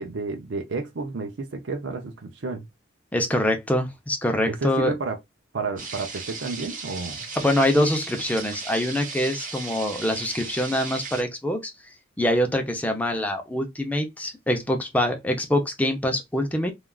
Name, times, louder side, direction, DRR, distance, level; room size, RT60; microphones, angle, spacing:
voice 1, 0.0-2.7 4.5-5.2 5.5-7.3, right 4 dB, 65° right, 0.5 m, -31 dB
voice 2, 3.1-4.9 7.4-11.7 12.2-16.7, left 1 dB, 10° left, 0.5 m, -24 dB
sound 1, 5.8-11.2, right 4 dB, 40° right, 1.3 m, -36 dB
3.3 x 2.4 x 2.3 m
head